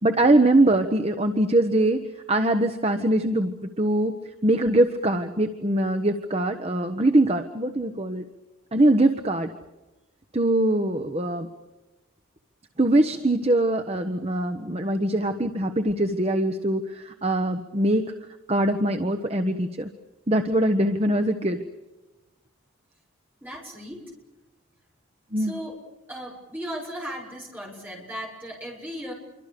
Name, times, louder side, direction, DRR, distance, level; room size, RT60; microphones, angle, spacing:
voice 1, 0.0-4.1 4.4-8.2 8.7-9.5 10.3-11.5 12.8-18.0 18.5-19.9 20.3-21.6 25.3-25.5, right 1 dB, 30° right, 6 dB, 1.2 m, -22 dB
voice 2, 23.4-24.1 25.4-25.8 26.1-29.1, equal, 10° right, -1 dB, 7.1 m, -36 dB
27.5 x 24.5 x 6.9 m, 1.1 s
head